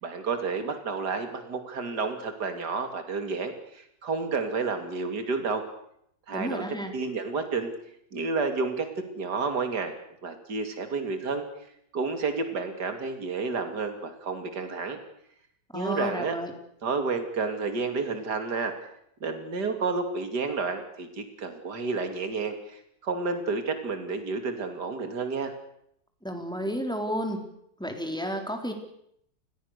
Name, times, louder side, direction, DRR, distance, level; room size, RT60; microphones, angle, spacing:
voice 1, 0.0-5.7 6.3-6.6 6.9-7.7 8.1-8.9 9.1-9.9 10.2-11.4 11.9-15.0 15.7-16.3 16.8-18.7 19.2-25.5, right 4 dB, 65° right, 7 dB, 3.3 m, -30 dB
voice 2, 6.3-6.9 15.7-16.5 26.2-27.4 27.8-28.7, equal, ahead, 4 dB, 4.0 m, -31 dB
29.5 x 20.5 x 6.8 m, 0.73 s
omnidirectional pair, 2.0 m